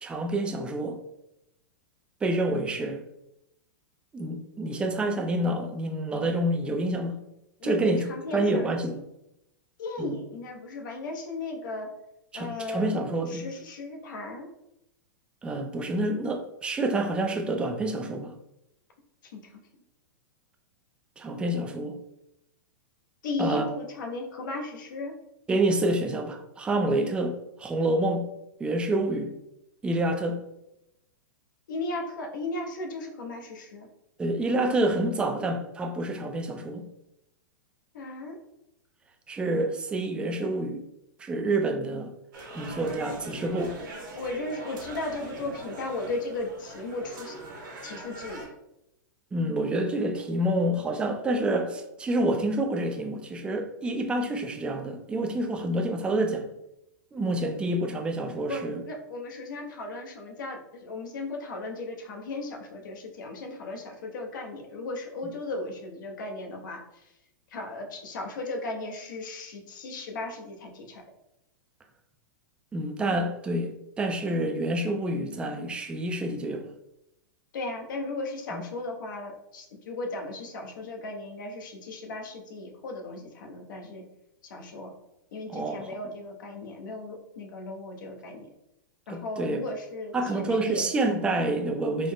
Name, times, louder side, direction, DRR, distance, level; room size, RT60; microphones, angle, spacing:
voice 1, 0.0-1.0 2.2-3.0 4.1-7.2 7.6-8.0 8.3-9.0 10.0-10.2 12.3-13.5 15.4-18.3 21.2-22.0 23.4-23.7 25.5-28.3 28.6-29.3 29.8-30.4 34.2-36.8 39.3-40.8 41.2-42.1 42.5-43.7 49.3-56.5 57.1-58.8 72.7-73.7 74.0-76.7 78.5-78.6 85.5-85.9 89.1-89.6 90.1-92.1, right 1 dB, 10° right, 4 dB, 0.3 m, -28 dB
voice 2, 7.6-8.9 9.8-11.9 12.3-12.9 13.3-14.5 19.4-19.5 23.2-25.1 31.7-33.9 37.9-38.4 44.2-47.3 47.8-48.5 58.5-67.0 67.5-71.0 77.5-84.0 84.4-84.9 85.3-88.5 89.1-90.9, left 2 dB, 70° left, 2 dB, 0.8 m, -36 dB
sound 1, 42.3-48.5, right 2 dB, 80° right, 1.2 m, -42 dB
3.8 x 2.0 x 3.5 m, 0.85 s
hypercardioid pair, 145°, 11 cm